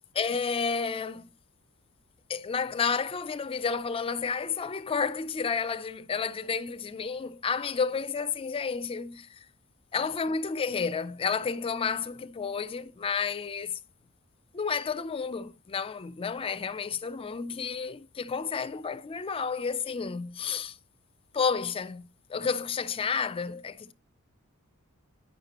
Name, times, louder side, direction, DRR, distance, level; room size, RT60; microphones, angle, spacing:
voice 1, 0.1-1.3 2.3-9.4 9.9-13.8 14.5-20.8 21.3-23.9, left 5 dB, 25° left, 0.4 m, -31 dB
9.4 x 6.6 x 2.9 m
head